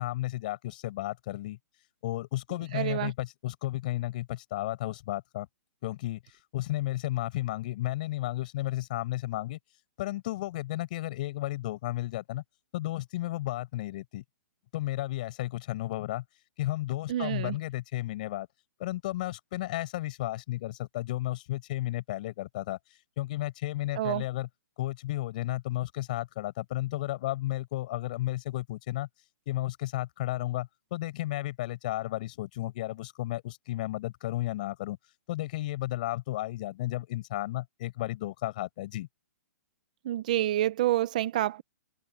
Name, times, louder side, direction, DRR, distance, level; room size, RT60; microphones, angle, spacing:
voice 1, 0.0-1.6 2.0-5.5 5.8-6.2 6.5-9.6 10.0-12.4 12.7-14.2 14.7-16.2 16.6-18.5 18.8-22.8 23.2-24.5 24.8-29.1 29.5-35.0 35.3-39.1, left 16 dB, 30° left, 7.5 m, -33 dB
voice 2, 2.7-3.1 17.1-17.6 24.0-24.2 40.0-41.6, right 13 dB, 30° right, 0.5 m, -28 dB
hypercardioid pair, 180°, 9 cm